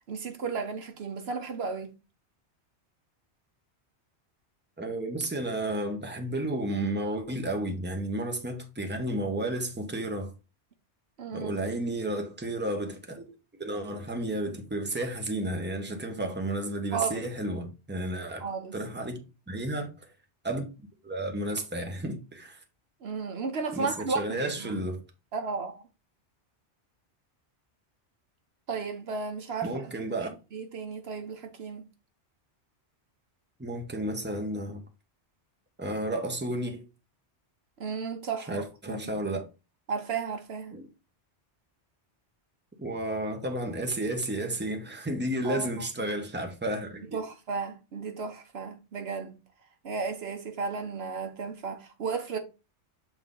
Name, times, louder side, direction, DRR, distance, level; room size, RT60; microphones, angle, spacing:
voice 1, 0.1-1.9 11.2-11.6 16.1-16.3 16.9-17.2 18.4-18.8 23.0-24.8 25.3-25.9 28.7-31.8 37.8-39.0 39.9-40.8 45.4-46.1 47.1-49.4 49.8-52.4, right 5 dB, 65° right, 1.0 m, -34 dB
voice 2, 4.8-10.3 11.3-13.3 13.6-19.2 19.5-20.1 20.4-20.7 21.0-22.6 23.7-25.0 29.6-30.3 33.6-34.8 35.8-36.8 38.5-39.5 40.7-40.9 42.8-47.2, right 1 dB, 10° right, 1.0 m, -32 dB
7.4 x 3.9 x 3.8 m
omnidirectional pair, 1.2 m